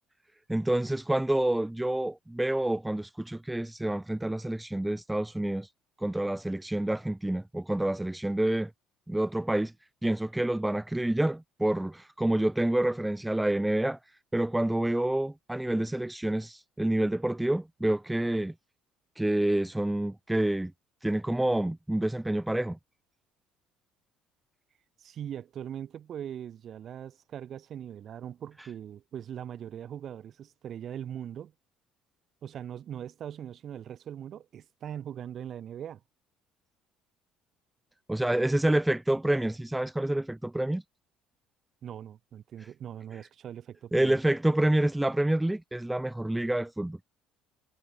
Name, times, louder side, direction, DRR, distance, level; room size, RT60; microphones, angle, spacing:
voice 1, 0.5-5.7 6.0-8.7 9.1-9.7 10.0-14.0 14.3-18.5 19.2-20.7 21.0-22.8 38.1-40.8 43.9-47.0, right 1 dB, 10° right, 1.2 m, -28 dB
voice 2, 25.0-31.5 32.4-36.0 41.8-44.2, right 9 dB, 55° right, 4.4 m, -41 dB
hypercardioid pair, 65°, 0 cm